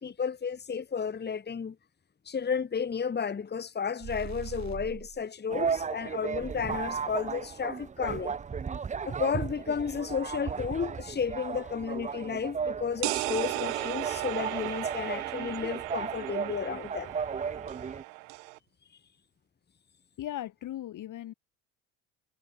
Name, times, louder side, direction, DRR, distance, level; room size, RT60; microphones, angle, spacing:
voice 1, 0.0-1.7 2.2-8.4 9.0-17.1, left 6 dB, 25° left, 1.7 m, -32 dB
sound 1, 4.0-5.2, right 9 dB, 45° right, 4.2 m, -41 dB
sound 2, 5.5-18.0, right 6 dB, 20° right, 0.6 m, -35 dB
sound 3, 13.0-18.6, right 27 dB, 80° right, 3.3 m, -35 dB
voice 2, 20.2-21.3, left 12 dB, 50° left, 1.9 m, -37 dB
hypercardioid pair, 65°, 38 cm